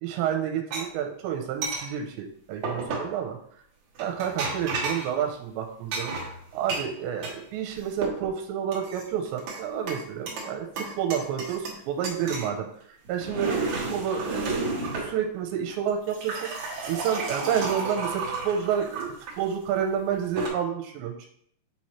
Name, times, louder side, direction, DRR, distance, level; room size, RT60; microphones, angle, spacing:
voice 1, 0.0-3.4 4.0-6.1 6.5-12.7 13.1-21.3, right 8 dB, 90° right, 4 dB, 2.9 m, -30 dB
sound 1, 0.7-0.8 1.6-1.9 2.6-3.1 4.0-5.1 5.9-7.4 7.7-8.3 8.7-9.6 9.9-10.5 10.8-11.8 12.0-12.5 13.0-15.1 15.9-19.3 20.1-20.5, right 3 dB, 70° right, 1.8 m, -32 dB
7.4 x 4.3 x 3.1 m, 0.64 s
omnidirectional pair, 5.1 m